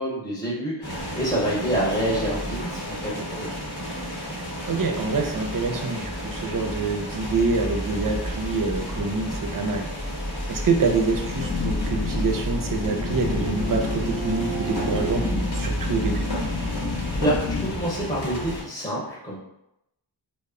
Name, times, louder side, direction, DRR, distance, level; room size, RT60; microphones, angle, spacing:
voice 1, 0.0-3.5 16.7-17.3 17.6-19.4, right 1 dB, 10° left, -6 dB, 0.8 m, -27 dB
sound 1, 0.8-18.6, equal, 65° left, 1.1 m, -31 dB
voice 2, 4.7-9.9 10.5-15.2 15.5-16.2, right 3 dB, 55° right, 3 dB, 0.5 m, -26 dB
sound 2, 11.1-17.7, left 4 dB, 50° left, 0.4 m, -30 dB
Bowed string instrument, 11.9-15.5, right 7 dB, 20° right, 0.9 m, -35 dB
2.1 x 2.0 x 3.5 m, 0.85 s
wide cardioid pair, 40°, 42 cm